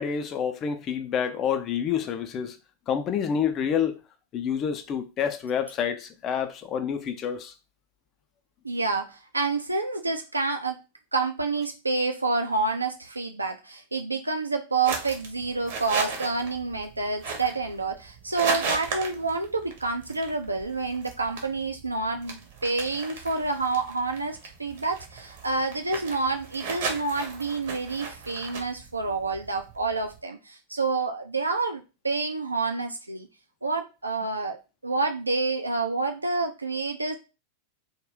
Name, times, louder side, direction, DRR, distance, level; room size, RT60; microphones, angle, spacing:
voice 1, 0.0-2.6 2.9-4.0 4.3-7.5, left 7 dB, 30° left, 0.4 m, -28 dB
voice 2, 8.6-10.8 11.1-33.3 33.6-34.6 34.8-37.2, right 3 dB, 80° right, 0.3 m, -28 dB
sound 1, 14.8-30.2, right 4 dB, 55° right, 0.7 m, -36 dB
2.4 x 2.1 x 3.4 m
figure-of-eight pair, 90°, 0 cm